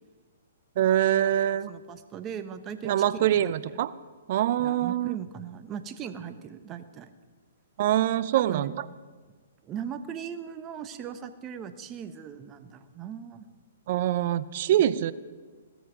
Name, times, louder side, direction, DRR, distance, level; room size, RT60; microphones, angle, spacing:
voice 1, 0.8-1.7 2.8-3.9 4.3-5.2 7.8-8.8 13.9-15.1, right 12 dB, 50° right, 16 dB, 0.7 m, -24 dB
voice 2, 1.5-2.9 3.2-3.5 4.6-7.1 8.4-8.7 9.6-13.5, right 8 dB, 25° right, 10 dB, 1.2 m, -39 dB
17.0 x 13.0 x 5.1 m, 1.5 s
hypercardioid pair, 130°, 0 cm